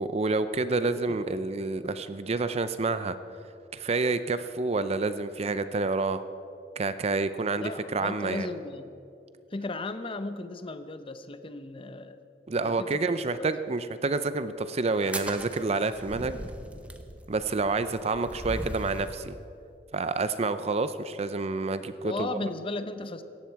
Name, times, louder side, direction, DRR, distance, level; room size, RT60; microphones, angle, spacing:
voice 1, 0.0-3.2 3.7-6.2 6.8-8.5 12.5-16.4 17.3-19.4 19.9-22.5, right 3 dB, 35° right, 12 dB, 0.5 m, -28 dB
voice 2, 7.6-8.9 9.5-12.2 12.6-13.5 22.0-23.2, left 2 dB, 30° left, 10 dB, 0.7 m, -36 dB
sound 1, 15.0-19.2, right 1 dB, 5° right, 0.9 m, -39 dB
17.5 x 14.5 x 4.7 m, 2.6 s
head